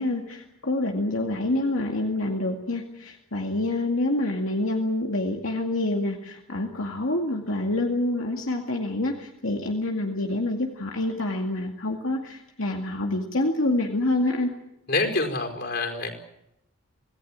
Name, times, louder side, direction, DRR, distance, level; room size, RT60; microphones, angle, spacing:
voice 1, 0.0-14.5, left 2 dB, 75° left, 1 dB, 2.3 m, -27 dB
voice 2, 14.9-16.1, left 3 dB, 50° left, 5 dB, 4.8 m, -26 dB
26.0 x 18.5 x 8.9 m, 0.84 s
head